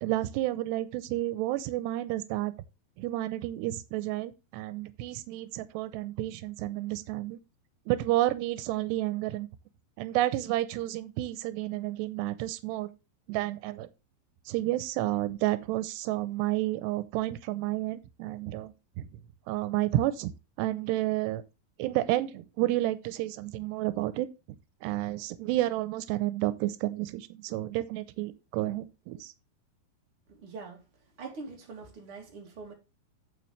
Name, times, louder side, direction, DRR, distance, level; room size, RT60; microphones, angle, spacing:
voice 1, 0.0-2.5 3.0-7.4 7.9-9.5 10.0-12.9 13.3-13.9 14.5-19.1 19.5-20.3 20.6-21.4 21.8-24.3 24.8-29.3, right 15 dB, 90° right, 2.9 m, -30 dB
voice 2, 30.3-30.8 31.2-32.7, right 4 dB, 35° right, 3.2 m, -43 dB
9.4 x 7.5 x 3.3 m
omnidirectional pair, 4.8 m